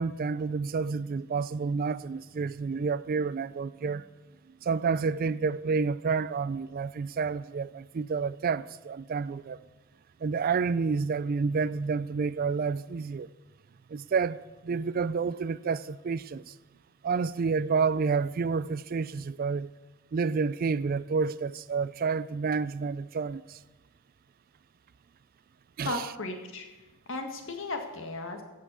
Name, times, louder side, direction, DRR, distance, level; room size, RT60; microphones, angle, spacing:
voice 1, 0.0-4.0 4.6-9.6 10.2-13.3 13.9-16.5 17.0-19.7 20.1-23.6 25.8-26.0, right 5 dB, 40° right, 0.3 m, -29 dB
voice 2, 25.8-26.6 27.1-28.4, left 2 dB, 60° left, 1.8 m, -35 dB
15.5 x 5.7 x 8.3 m
head